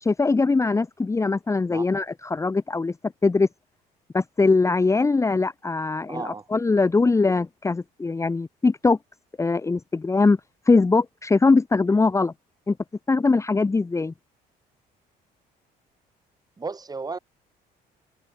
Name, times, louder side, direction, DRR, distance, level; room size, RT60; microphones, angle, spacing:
voice 1, 0.0-3.5 4.1-9.0 9.4-10.4 10.7-12.3 12.7-12.8 13.1-14.1, left 3 dB, 15° left, 1.2 m, -21 dB
voice 2, 6.1-6.4 16.6-17.2, right 4 dB, 20° right, 3.8 m, -33 dB
cardioid pair, 110°, 17 cm